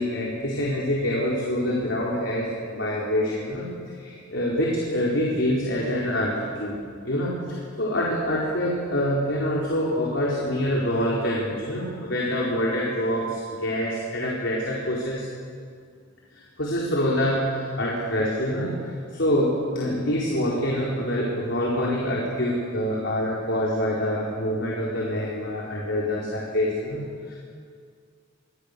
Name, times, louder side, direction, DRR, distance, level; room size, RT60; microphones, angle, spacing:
voice 1, 0.0-3.7 3.9-6.7 7.0-15.2 16.6-27.4, equal, 65° left, -4 dB, 4.7 m, -26 dB
28.0 x 24.5 x 7.0 m, 2.2 s
head